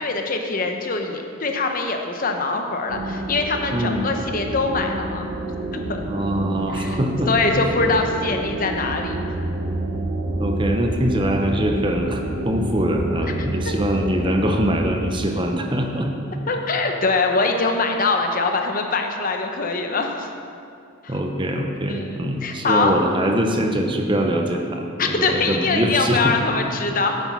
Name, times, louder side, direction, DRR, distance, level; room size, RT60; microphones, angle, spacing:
voice 1, 0.0-5.3 5.7-6.0 6.7-7.0 7.3-9.1 13.2-13.7 16.5-20.3 21.0-21.2 21.9-23.0 25.0-27.2, left 3 dB, 40° left, 4 dB, 0.8 m, -23 dB
sound 1, 2.9-15.1, right 1 dB, 85° right, 1.1 m, -28 dB
voice 2, 3.7-4.1 6.1-7.3 10.4-16.1 21.1-26.4, equal, 25° right, 3 dB, 0.7 m, -23 dB
8.2 x 8.2 x 6.0 m, 2.4 s
head